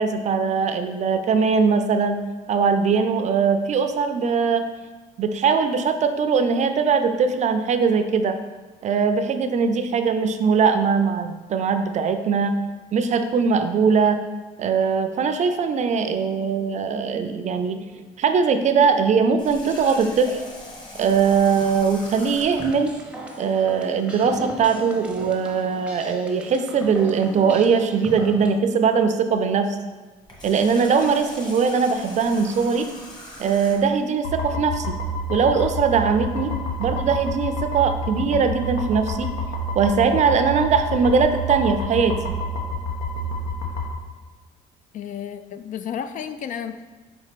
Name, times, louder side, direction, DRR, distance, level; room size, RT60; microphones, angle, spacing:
voice 1, 0.0-2.2 2.5-4.7 5.2-8.4 8.8-12.5 12.9-14.2 14.6-17.8 18.2-20.4 21.0-22.9 23.4-29.8 30.4-32.9 33.4-35.0 35.3-36.5 36.8-39.3 39.7-42.4, right 5 dB, 45° right, 8 dB, 0.5 m, -21 dB
Water tap faucet, 19.4-22.8 30.2-34.0, left 1 dB, 25° left, 1.4 m, -40 dB
sound 1, 22.6-28.6, right 1 dB, 5° right, 0.7 m, -37 dB
sound 2, 34.2-43.9, left 1 dB, 80° left, 1.2 m, -28 dB
voice 2, 44.9-46.8, left 8 dB, 50° left, 10 dB, 0.4 m, -32 dB
4.5 x 4.2 x 5.0 m, 1.3 s
cardioid pair, 110°, 17 cm